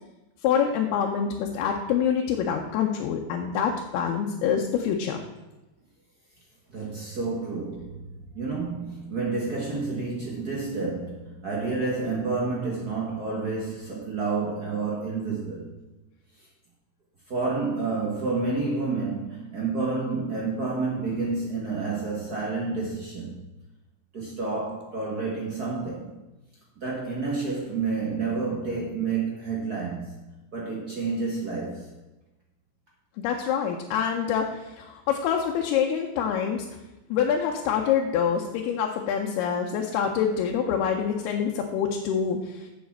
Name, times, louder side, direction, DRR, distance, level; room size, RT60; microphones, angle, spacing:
voice 1, 0.4-5.2 33.2-36.7 37.1-42.7, left 7 dB, 90° left, 1 dB, 2.8 m, -26 dB
voice 2, 6.7-15.7 17.3-23.4 24.1-26.2 26.8-30.2 30.5-31.9, right 4 dB, 60° right, -3 dB, 1.0 m, -29 dB
7.2 x 7.2 x 7.3 m, 1.0 s
omnidirectional pair, 4.4 m